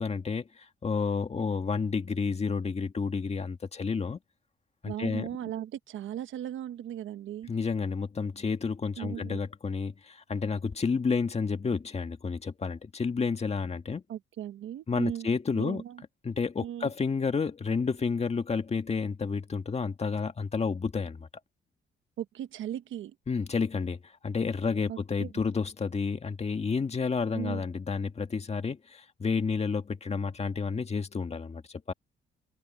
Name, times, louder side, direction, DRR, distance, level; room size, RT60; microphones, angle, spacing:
voice 1, 0.0-4.2 4.8-5.3 7.5-14.0 14.9-15.8 16.2-21.3 23.3-31.9, left 5 dB, 30° left, 1.9 m, -30 dB
voice 2, 4.8-7.5 9.0-9.4 14.1-16.0 16.6-16.9 22.2-23.1 24.9-25.3 27.3-27.7, right 11 dB, 75° right, 1.4 m, -37 dB
cardioid pair, 90°, 20 cm